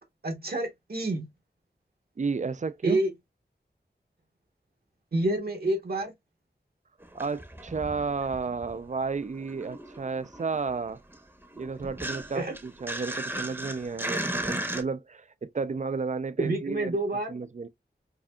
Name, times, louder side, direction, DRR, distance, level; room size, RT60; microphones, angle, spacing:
voice 1, 0.2-1.2 2.8-3.1 5.1-6.1 12.3-12.5 16.4-17.3, right 2 dB, 60° right, 1.0 m, -28 dB
voice 2, 2.2-3.0 7.1-11.0 11.6-17.0 17.3-17.7, right 4 dB, 45° right, 0.4 m, -32 dB
sound 1, 7.0-8.9 9.2-14.8, right 1 dB, 10° right, 0.8 m, -36 dB
4.8 x 2.7 x 2.2 m
wide cardioid pair, 75°, 18 cm